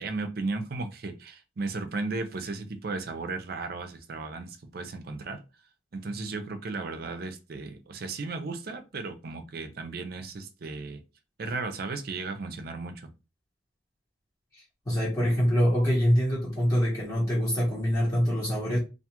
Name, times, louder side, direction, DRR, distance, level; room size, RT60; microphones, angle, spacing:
voice 1, 0.0-5.4 5.9-11.0 11.4-13.1, right 3 dB, 55° right, 0.5 m, -35 dB
voice 2, 14.5-18.8, equal, 20° left, 1.0 m, -25 dB
2.4 x 2.3 x 2.9 m
head